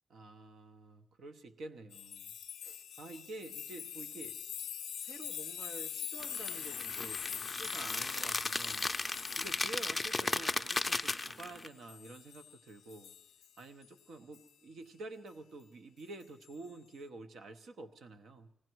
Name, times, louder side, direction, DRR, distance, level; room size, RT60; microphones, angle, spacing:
voice 1, 0.1-2.3 2.6-4.4 5.0-8.9 9.4-13.1 13.6-18.5, right 2 dB, 75° right, 8 dB, 0.8 m, -49 dB
sound 1, 1.9-12.6 12.9-13.9 14.3-14.5 16.2-16.4, left 9 dB, 90° left, 0.5 m, -44 dB
sound 2, 6.2-11.7, left 2 dB, 15° left, 0.4 m, -36 dB
19.0 x 16.0 x 4.6 m, 0.90 s
wide cardioid pair, 120°, 0 cm